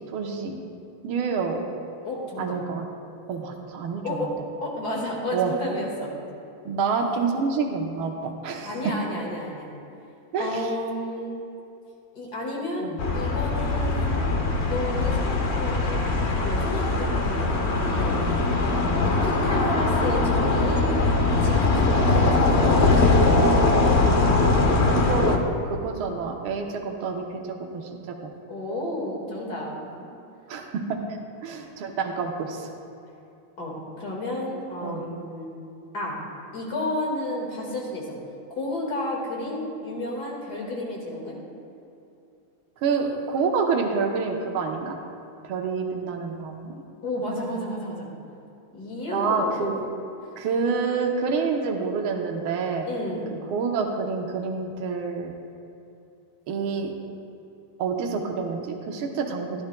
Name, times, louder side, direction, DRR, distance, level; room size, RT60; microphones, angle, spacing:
voice 1, 0.1-0.6 1.0-1.6 2.4-2.9 3.3-4.3 5.3-5.5 6.7-8.7 10.3-10.7 12.8-13.0 18.8-18.9 22.3-22.4 25.0-28.3 30.5-31.0 31.4-32.7 34.8-35.0 42.8-45.0 45.4-46.8 49.1-49.8 50.4-52.9 53.5-55.4 56.5-56.9 57.8-59.6, right 5 dB, 75° right, 2 dB, 1.7 m, -28 dB
voice 2, 2.0-2.6 4.0-4.3 4.6-6.1 8.6-9.7 10.4-11.3 12.1-14.2 14.6-18.2 19.2-21.0 21.4-23.4 28.5-29.9 33.6-35.5 35.9-36.2 36.5-38.1 38.5-41.4 47.0-48.1 48.7-49.7 52.9-53.3, left 1 dB, 50° left, -2 dB, 2.3 m, -31 dB
sound 1, 13.0-25.4, left 3 dB, 75° left, 0.6 m, -21 dB
15.5 x 12.0 x 2.2 m, 2.7 s
omnidirectional pair, 2.4 m